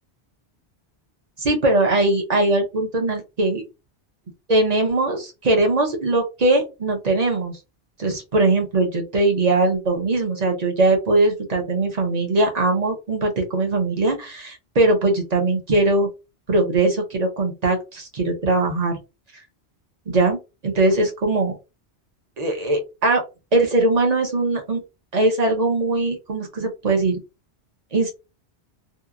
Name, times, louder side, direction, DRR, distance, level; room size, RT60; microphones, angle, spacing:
voice 1, 1.4-3.6 4.5-7.6 8.0-16.1 16.5-19.0 20.1-20.4 20.6-21.6 22.4-23.2 23.5-24.8 25.1-27.2 27.9-28.1, right 2 dB, 40° right, 2 dB, 0.8 m, -20 dB
2.8 x 2.3 x 2.4 m, 0.27 s
omnidirectional pair, 1.1 m